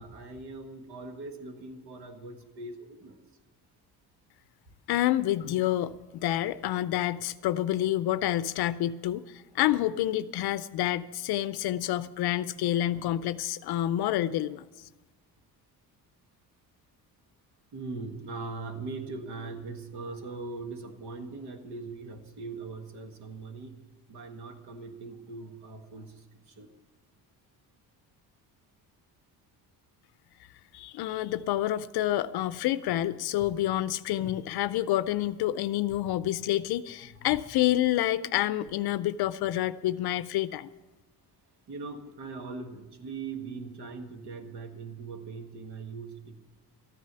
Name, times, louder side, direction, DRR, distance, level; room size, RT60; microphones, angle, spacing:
voice 1, 0.0-3.2 11.8-11.9 17.7-23.8 24.1-26.7 33.4-33.5 37.1-37.2 41.7-46.4, right 3 dB, 75° right, 6 dB, 1.7 m, -41 dB
voice 2, 4.9-14.9 30.7-40.7, left 13 dB, 70° left, 15 dB, 0.5 m, -28 dB
14.0 x 9.8 x 6.8 m, 1.2 s
cardioid pair, 135°, 39 cm